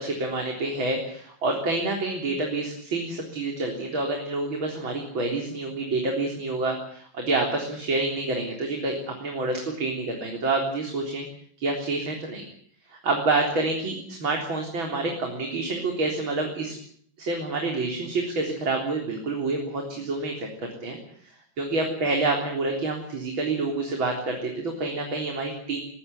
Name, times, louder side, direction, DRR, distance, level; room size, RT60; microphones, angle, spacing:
voice 1, 0.0-11.3 11.6-12.5 13.0-16.8 17.2-21.0 21.2-25.8, right 2 dB, 90° right, 2 dB, 4.6 m, -28 dB
21.5 x 18.0 x 9.7 m, 0.62 s
omnidirectional pair, 2.1 m